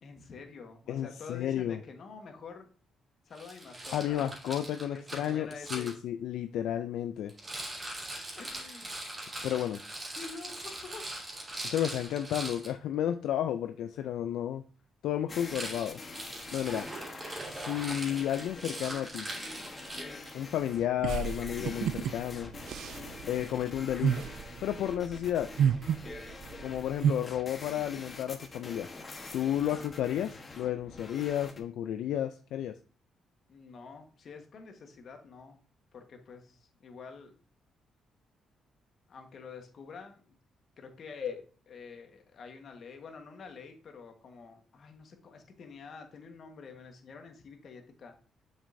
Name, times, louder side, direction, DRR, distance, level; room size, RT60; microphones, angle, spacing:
voice 1, 0.0-2.7 3.2-4.3 4.9-5.9 6.7-6.8 8.4-9.0 10.1-11.0 29.6-29.9 33.5-35.6 35.9-37.3 39.1-40.4 40.8-48.1, left 5 dB, 55° left, 5 dB, 1.4 m, -47 dB
voice 2, 0.9-1.8 3.9-7.3 9.4-9.8 11.6-14.6 15.0-16.0 16.5-16.9 17.5-19.3 20.3-22.5 23.3-24.3 24.6-25.5 26.6-28.9 29.3-32.7, left 11 dB, 80° left, 8 dB, 0.3 m, -32 dB
Rattle, 3.4-5.9 7.3-12.7 15.4-20.4, right 1 dB, 30° right, 2.8 m, -41 dB
sound 1, 15.3-31.6, left 3 dB, 35° left, 1.2 m, -46 dB
sound 2, 21.0-27.1, right 8 dB, 75° right, 0.3 m, -31 dB
7.0 x 5.2 x 2.6 m, 0.38 s
cardioid pair, 90°, 0 cm